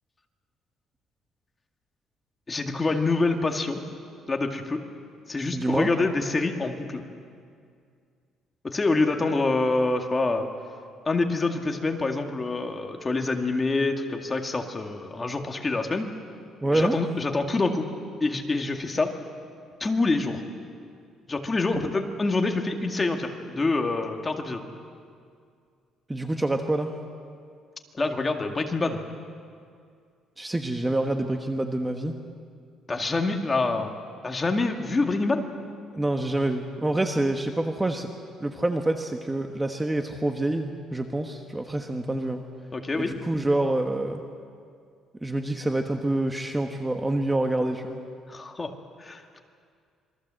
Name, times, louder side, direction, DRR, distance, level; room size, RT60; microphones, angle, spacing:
voice 1, 2.5-3.8 4.3-4.8 5.3-7.1 8.6-10.5 11.1-16.1 16.7-17.9 18.2-19.1 19.8-20.4 21.3-24.7 27.9-29.0 32.9-35.5 42.7-43.1 48.3-48.7 49.0-49.4, left 3 dB, 20° left, 3 dB, 2.1 m, -26 dB
voice 2, 5.5-5.9 16.6-17.0 26.1-26.9 30.4-32.2 35.9-38.1 38.4-42.4 43.0-44.2 45.2-48.0, right 1 dB, 10° right, 4 dB, 1.3 m, -27 dB
27.0 x 22.0 x 7.7 m, 2.2 s
cardioid pair, 130°, 0 cm